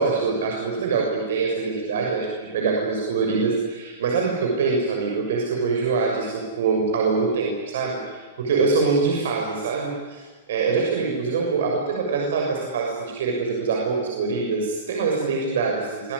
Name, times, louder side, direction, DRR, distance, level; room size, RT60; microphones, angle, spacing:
voice 1, 0.0-10.2 10.5-16.1, right 4 dB, 65° right, -1 dB, 6.8 m, -24 dB
26.5 x 20.5 x 9.9 m, 1.4 s
supercardioid pair, 175°, 0 cm